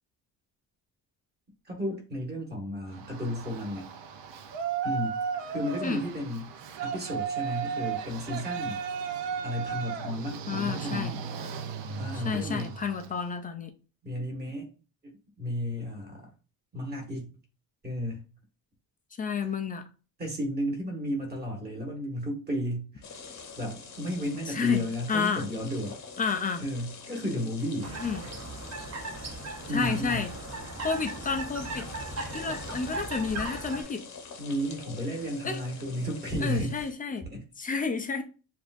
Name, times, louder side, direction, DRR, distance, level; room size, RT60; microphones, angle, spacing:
voice 1, 1.6-3.9 4.8-5.1 5.5-6.5 6.8-8.8 9.4-11.2 12.0-12.7 14.0-14.7 15.4-16.3 16.7-17.3 17.8-18.2 20.2-23.0 23.6-26.0 26.6-27.9 29.7-30.2 34.4-36.8 37.3-37.4 37.8-37.9, equal, 25° right, 1.5 m, -33 dB
Yell, 2.9-13.1, right 6 dB, 85° right, 0.7 m, -35 dB
voice 2, 10.5-11.2 12.1-13.7 19.2-19.8 24.5-25.5 26.2-26.6 28.0-28.2 29.7-30.3 30.8-31.9 32.3-34.0 35.4-35.6 36.4-37.3 37.6-38.2, left 5 dB, 20° left, 0.3 m, -30 dB
sound 1, 23.0-36.9, left 5 dB, 40° left, 0.8 m, -46 dB
sound 2, 27.8-33.8, right 2 dB, 40° right, 1.0 m, -38 dB
6.9 x 2.6 x 2.5 m
cardioid pair, 165°, 42 cm